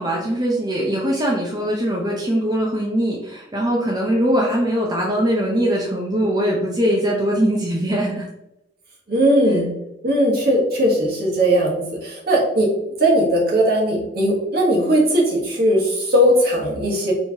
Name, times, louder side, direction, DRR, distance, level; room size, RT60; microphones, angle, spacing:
voice 1, 0.0-8.3, equal, 25° right, -3 dB, 0.6 m, -21 dB
voice 2, 9.1-9.7 10.0-12.7 13.0-17.1, equal, 60° right, -3 dB, 1.4 m, -18 dB
4.4 x 3.2 x 2.8 m, 0.88 s
head